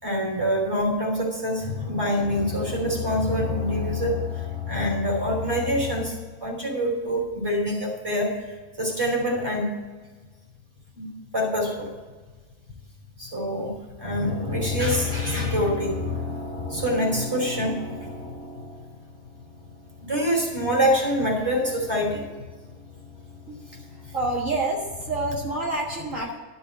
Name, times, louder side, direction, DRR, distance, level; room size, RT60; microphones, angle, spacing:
voice 1, 0.0-8.3 8.8-9.7 10.9-11.9 13.2-13.7 14.0-18.9 20.0-22.3 23.5-24.1, left 1 dB, 15° right, -1 dB, 3.0 m, -26 dB
voice 2, 23.9-26.4, right 2 dB, 60° right, -3 dB, 1.9 m, -28 dB
12.5 x 5.5 x 8.1 m, 1.4 s
omnidirectional pair, 1.6 m